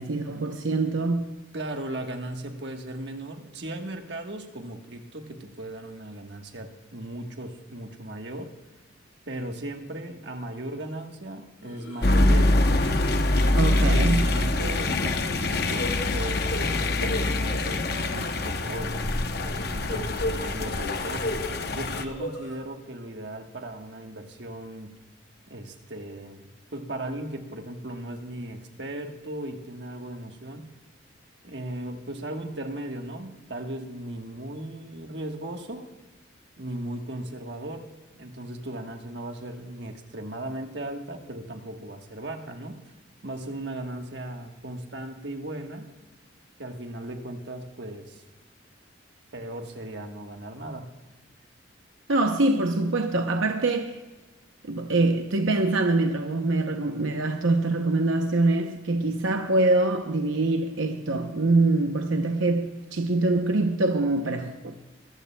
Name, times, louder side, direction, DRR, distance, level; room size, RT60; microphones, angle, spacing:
voice 1, 0.0-1.3 13.6-14.3 52.1-54.0 54.6-64.7, right 2 dB, 85° right, 0.7 m, -24 dB
voice 2, 1.5-8.5 9.3-12.7 13.5-19.0 19.7-24.9 25.5-30.7 31.4-35.9 36.6-42.8 43.2-45.9 46.6-48.2 49.3-51.0, right 1 dB, 60° right, 1.3 m, -37 dB
sound 1, 11.6-12.0 12.4-12.7 13.0-13.1 14.3-14.9 15.2-18.3 19.4-21.5 21.7-22.6, left 1 dB, 80° left, 4.2 m, -36 dB
sound 2, 12.0-22.0, left 2 dB, 50° left, 0.8 m, -24 dB
22.5 x 14.0 x 2.2 m
head